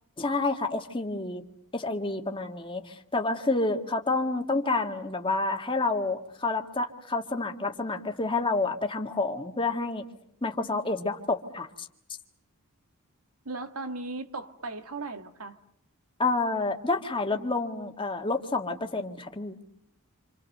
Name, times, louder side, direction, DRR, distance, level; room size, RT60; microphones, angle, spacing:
voice 1, 0.2-1.4 1.7-10.0 10.4-11.9 16.2-19.6, left 3 dB, 25° left, 1.8 m, -29 dB
voice 2, 13.5-15.6, right 3 dB, 80° right, 1.8 m, -37 dB
27.5 x 27.5 x 6.7 m
head